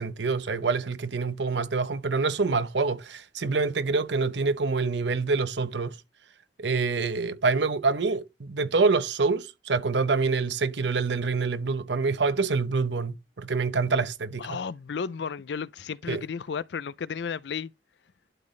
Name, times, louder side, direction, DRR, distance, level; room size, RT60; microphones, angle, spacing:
voice 1, 0.0-6.0 6.6-14.6 16.1-16.2, right 4 dB, 75° right, 0.8 m, -26 dB
voice 2, 14.4-17.7, left 6 dB, 70° left, 0.4 m, -33 dB
12.0 x 4.0 x 3.2 m
head